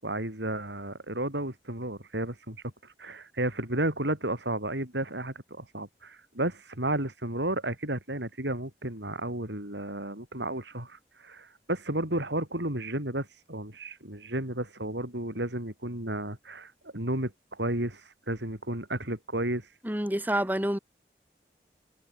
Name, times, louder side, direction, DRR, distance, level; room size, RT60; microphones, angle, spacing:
voice 1, 0.0-2.6 3.0-18.0 18.3-19.7, right 1 dB, 85° right, 8.0 m, -32 dB
voice 2, 19.8-20.8, right 1 dB, 10° right, 2.7 m, -28 dB
head